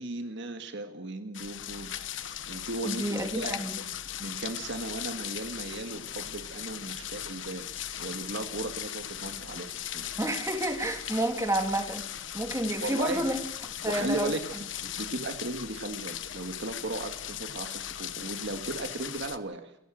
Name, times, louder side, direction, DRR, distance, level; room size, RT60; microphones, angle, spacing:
voice 1, 0.0-2.2 2.5-3.6 4.2-7.7 8.0-10.1 12.8-13.3 13.8-14.5 14.8-19.8, right 2 dB, 60° right, 6 dB, 2.0 m, -36 dB
sound 1, 1.3-19.4, left 10 dB, 65° left, 1.2 m, -38 dB
voice 2, 2.8-3.8 10.2-12.0 12.3-13.4 13.8-14.3, right 1 dB, 15° right, 4 dB, 3.0 m, -30 dB
28.5 x 14.0 x 6.5 m, 0.82 s
head